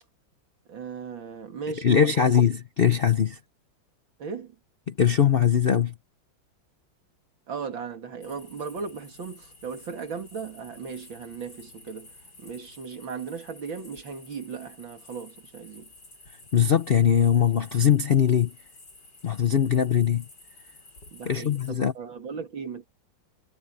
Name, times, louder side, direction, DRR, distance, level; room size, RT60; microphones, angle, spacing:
voice 1, 0.7-2.4 4.2-4.6 7.5-12.1 12.4-15.9 21.1-22.8, right 5 dB, 75° right, 3.1 m, -37 dB
voice 2, 1.8-3.4 4.9-5.9 16.5-18.5 19.2-20.3 21.3-21.9, left 8 dB, 75° left, 0.5 m, -21 dB
sound 1, 8.2-21.7, left 2 dB, 60° left, 6.6 m, -51 dB
omnidirectional pair, 2.1 m